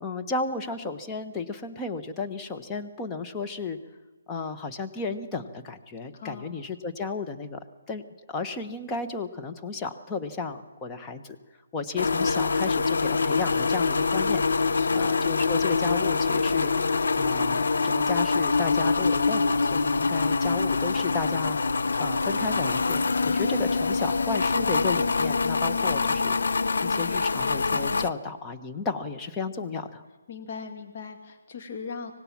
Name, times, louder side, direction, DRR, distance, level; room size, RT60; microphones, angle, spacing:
voice 1, 0.0-3.8 4.3-7.6 7.9-8.0 8.3-11.4 11.7-14.4 14.9-16.7 17.2-21.6 22.0-30.0, left 4 dB, 15° left, 5 dB, 1.3 m, -33 dB
voice 2, 6.1-6.6 14.7-15.1 30.3-32.1, left 5 dB, 40° left, 4 dB, 2.3 m, -39 dB
sound 1, 12.0-28.1, left 4 dB, 65° left, 0.8 m, -25 dB
25.0 x 18.5 x 6.1 m, 1.3 s
figure-of-eight pair, 145°, 0 cm